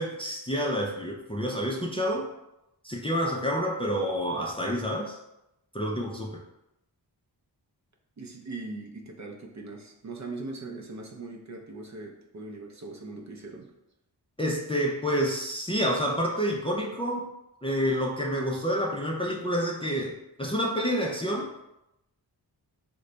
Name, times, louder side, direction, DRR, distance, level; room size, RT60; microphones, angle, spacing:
voice 1, 0.0-2.3 2.8-5.2 5.7-6.4 14.4-17.3 17.6-21.5, equal, 15° left, -2 dB, 0.4 m, -28 dB
voice 2, 8.2-13.7, right 3 dB, 45° right, 1 dB, 0.6 m, -40 dB
3.2 x 2.2 x 3.8 m, 0.90 s
wide cardioid pair, 65°, 42 cm